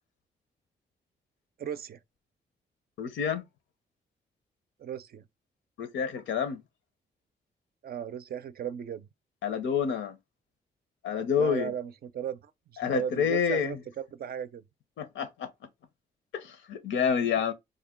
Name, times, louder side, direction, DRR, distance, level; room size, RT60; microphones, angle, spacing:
voice 1, 1.6-2.0 4.8-5.3 7.8-9.1 11.4-14.6 17.2-17.3, right 8 dB, 55° right, 0.5 m, -36 dB
voice 2, 3.0-3.4 5.8-6.6 9.4-10.2 11.0-11.7 12.8-13.8 15.0-15.5 16.3-17.5, left 7 dB, 80° left, 0.6 m, -28 dB
3.3 x 2.2 x 3.6 m
supercardioid pair, 55°, 19 cm